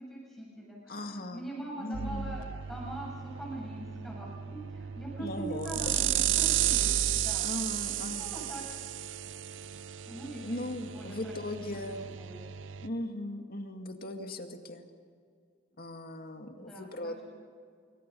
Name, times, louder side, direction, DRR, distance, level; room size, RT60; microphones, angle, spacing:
voice 1, 0.0-7.5 8.1-8.6 10.0-11.3 11.7-12.5 16.5-17.2, right 2 dB, ahead, -5 dB, 7.9 m, -43 dB
voice 2, 0.9-1.5 1.8-2.3 5.2-6.3 7.4-8.3 10.4-12.1 12.8-14.9 15.8-17.2, left 1 dB, 55° left, 5 dB, 2.2 m, -38 dB
sound 1, 1.9-12.9, right 11 dB, 85° right, 0.6 m, -33 dB
26.0 x 24.5 x 5.5 m, 2.2 s
head